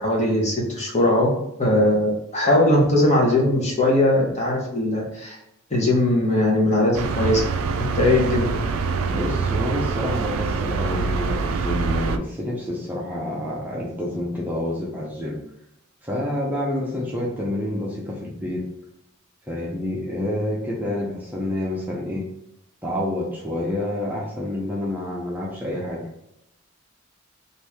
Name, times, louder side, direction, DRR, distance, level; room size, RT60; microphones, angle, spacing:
voice 1, 0.0-1.3 1.6-5.4 5.7-7.5 7.8-8.5, left 1 dB, 35° left, -2 dB, 1.0 m, -20 dB
sound 1, 6.9-12.2, right 5 dB, 75° right, 0.3 m, -25 dB
voice 2, 9.1-15.4 16.0-18.7 19.5-22.3 22.8-26.1, left 1 dB, 10° right, -4 dB, 0.6 m, -28 dB
3.0 x 2.6 x 3.4 m, 0.81 s
head